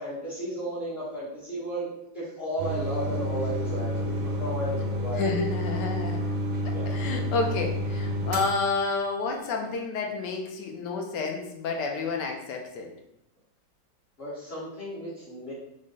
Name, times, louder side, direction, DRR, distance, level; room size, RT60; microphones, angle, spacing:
voice 1, 0.0-1.9 2.1-5.3 6.7-7.0 14.2-15.5, equal, 40° left, -9 dB, 0.9 m, -34 dB
sound 1, 2.6-9.1, equal, 75° right, 0.7 m, -30 dB
voice 2, 5.1-6.4 6.6-12.9, left 4 dB, 75° left, 2 dB, 1.2 m, -30 dB
3.9 x 2.1 x 3.7 m, 0.81 s
omnidirectional pair, 2.0 m